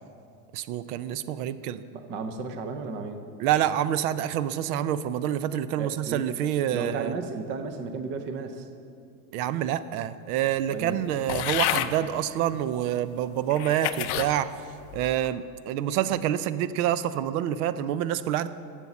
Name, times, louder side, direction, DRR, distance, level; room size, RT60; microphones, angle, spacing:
voice 1, 0.5-1.8 3.4-7.1 9.3-14.5 14.9-18.5, right 11 dB, 75° right, 14 dB, 0.6 m, -27 dB
voice 2, 1.9-3.3 5.8-6.2 6.7-8.7 10.7-11.0, right 4 dB, 25° right, 7 dB, 0.5 m, -34 dB
sound 1, 11.3-11.9 12.7-12.8 13.5-14.3 14.9-15.3, left 14 dB, 50° left, 0.5 m, -29 dB
10.5 x 7.4 x 7.0 m, 2.4 s
cardioid pair, 175°, 45 cm